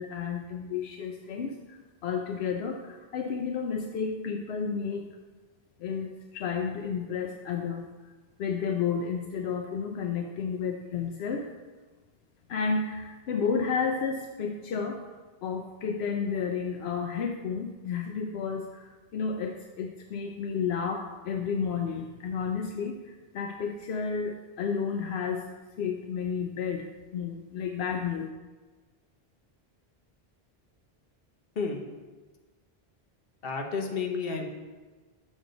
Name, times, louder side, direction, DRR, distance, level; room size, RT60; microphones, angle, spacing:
voice 1, 0.0-5.1 5.8-7.8 8.4-11.5 12.5-15.0 15.4-25.5 25.8-26.9 27.1-28.3, left 6 dB, 85° left, 3 dB, 0.8 m, -31 dB
voice 2, 33.4-34.5, left 4 dB, 65° left, 2 dB, 1.1 m, -31 dB
6.4 x 6.2 x 4.0 m, 1.3 s
omnidirectional pair, 1.0 m